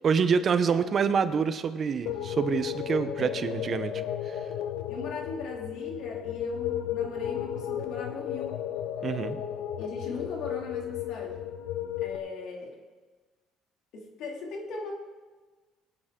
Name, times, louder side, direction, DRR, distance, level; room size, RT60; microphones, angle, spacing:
voice 1, 0.0-4.4 9.0-9.4, right 6 dB, 40° right, 11 dB, 0.8 m, -27 dB
sound 1, 2.1-12.2, left 10 dB, 85° left, 0.9 m, -34 dB
voice 2, 3.2-3.7 4.9-8.5 9.8-11.4 12.0-12.7 13.9-14.9, left 3 dB, 70° left, 0 dB, 2.7 m, -39 dB
22.0 x 9.0 x 3.8 m, 1.3 s
cardioid pair, 130°, 0 cm